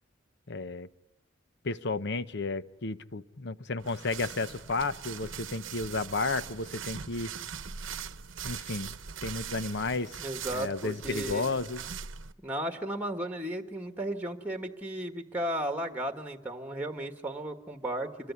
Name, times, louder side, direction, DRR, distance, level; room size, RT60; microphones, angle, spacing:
voice 1, 0.5-0.9 1.6-7.3 8.4-8.9 9.2-10.2 10.5-11.8, left 3 dB, 60° left, 13 dB, 0.9 m, -32 dB
sound 1, 3.8-12.3, right 7 dB, 65° right, 1.0 m, -41 dB
voice 2, 10.2-11.5 12.4-18.3, right 1 dB, 10° right, 6 dB, 1.5 m, -34 dB
27.0 x 22.5 x 9.5 m, 0.90 s
head